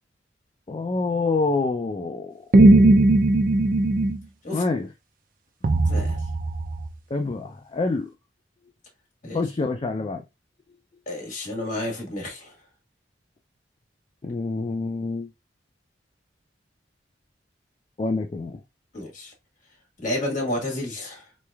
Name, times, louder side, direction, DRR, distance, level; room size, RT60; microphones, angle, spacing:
voice 1, 0.7-2.4 4.5-4.9 7.1-8.1 9.3-10.2 14.2-15.3 18.0-18.6, left 3 dB, 30° left, 0.4 m, -26 dB
sound 1, 2.5-4.2 5.6-6.9, right 2 dB, 50° right, 0.5 m, -18 dB
voice 2, 5.8-6.2 9.2-9.4 11.1-12.5 18.9-19.3 20.0-21.2, left 1 dB, 45° left, 1.6 m, -30 dB
4.0 x 3.1 x 2.3 m
head